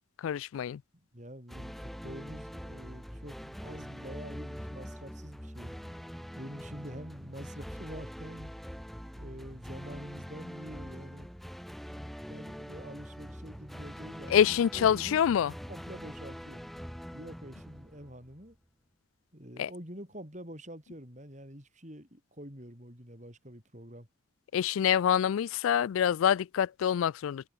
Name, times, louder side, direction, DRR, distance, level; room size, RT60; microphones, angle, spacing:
voice 1, 0.2-0.8 14.3-15.5 19.6-19.7 24.5-27.5, left 9 dB, 75° left, 0.3 m, -26 dB
voice 2, 1.1-1.8 2.0-5.7 6.4-8.5 9.2-11.3 11.9-15.2 15.7-16.7 17.1-18.6 19.3-24.1, equal, 35° right, 7.4 m, -46 dB
sound 1, 1.5-18.5, equal, ahead, 0.6 m, -44 dB
head